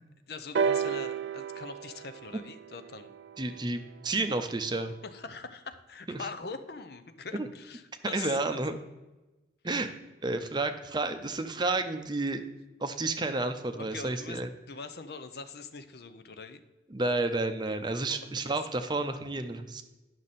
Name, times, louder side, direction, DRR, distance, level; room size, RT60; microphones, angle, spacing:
voice 1, 0.3-3.1 5.0-8.4 9.6-9.8 13.8-14.4 14.7-16.6 18.0-18.2, left 4 dB, 60° left, 10 dB, 0.6 m, -42 dB
sound 1, 0.5-4.4 5.3-5.4, right 6 dB, 75° right, 0.4 m, -33 dB
voice 2, 3.4-4.9 6.1-6.2 7.4-7.5 8.0-8.8 9.6-9.9 10.2-12.4 12.8-14.5 16.9-19.8, right 2 dB, 25° right, 8 dB, 0.6 m, -31 dB
10.5 x 6.3 x 4.1 m, 1.1 s
head